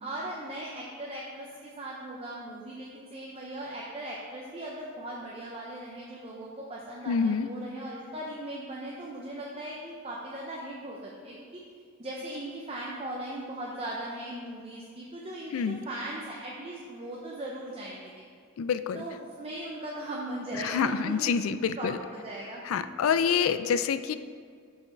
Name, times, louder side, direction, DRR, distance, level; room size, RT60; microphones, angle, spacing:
voice 1, 0.0-11.6 12.0-18.2 18.9-22.6, right 1 dB, 30° right, -3 dB, 0.6 m, -39 dB
voice 2, 7.1-7.5 15.5-15.8 18.6-19.0 20.6-22.0 22.6-24.2, left 6 dB, 90° left, 12 dB, 0.4 m, -27 dB
7.0 x 5.6 x 4.5 m, 2.1 s
head